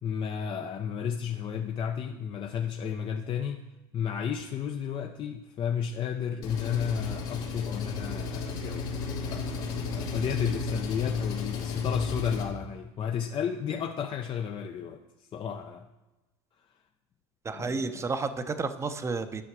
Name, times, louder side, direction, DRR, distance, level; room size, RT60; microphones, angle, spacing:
voice 1, 0.0-3.6 3.9-15.0 15.3-15.9 17.5-17.9, left 8 dB, 35° left, 4 dB, 0.6 m, -33 dB
Engine, 6.4-12.4, left 4 dB, 65° left, 1.7 m, -33 dB
voice 2, 17.4-19.4, right 4 dB, 20° right, 10 dB, 0.7 m, -31 dB
10.0 x 5.7 x 4.7 m, 1.1 s
supercardioid pair, 95°, 15 cm